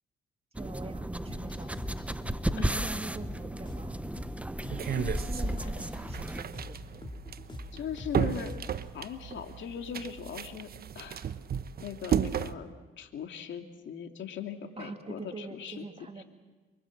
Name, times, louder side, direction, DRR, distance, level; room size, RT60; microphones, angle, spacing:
sound 1, 0.5-6.4, right 1 dB, 5° right, 1.0 m, -34 dB
voice 1, 0.6-1.8 2.5-4.0 5.1-7.0 14.8-16.2, right 3 dB, 30° right, 6 dB, 2.6 m, -44 dB
sound 2, 1.3-8.9, left 2 dB, 25° left, 4.3 m, -45 dB
voice 2, 4.6-5.1 5.4-5.6 7.7-8.5 8.9-10.7 10.9-11.3 11.8-12.7 13.0-15.9 16.2-16.3, left 8 dB, 70° left, 5 dB, 2.7 m, -39 dB
sound 3, 4.7-12.5, right 8 dB, 50° right, 1.1 m, -34 dB
28.0 x 23.5 x 7.5 m, 1.3 s
cardioid pair, 90°, 20 cm